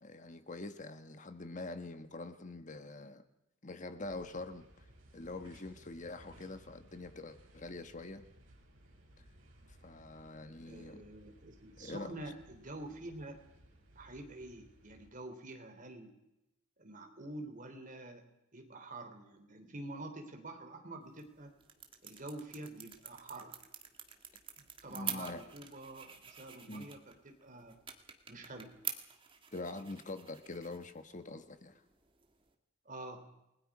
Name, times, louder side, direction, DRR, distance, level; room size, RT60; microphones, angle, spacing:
voice 1, 0.0-3.2 3.6-4.8 5.1-8.2 9.2-9.3 9.8-11.0 11.8-12.1 24.9-25.4 26.7-26.9 29.5-31.8, left 2 dB, 40° left, 1.2 m, -44 dB
sound 1, 4.0-15.1, right 1 dB, 85° right, 6.6 m, -61 dB
voice 2, 10.7-13.4 14.0-16.1 16.8-18.3 18.5-21.5 22.0-23.6 24.6-27.8 28.3-28.8 32.9-33.3, right 2 dB, 40° right, 3.5 m, -47 dB
sound 2, 21.0-32.6, right 7 dB, 25° right, 1.8 m, -48 dB
29.0 x 20.5 x 4.9 m
head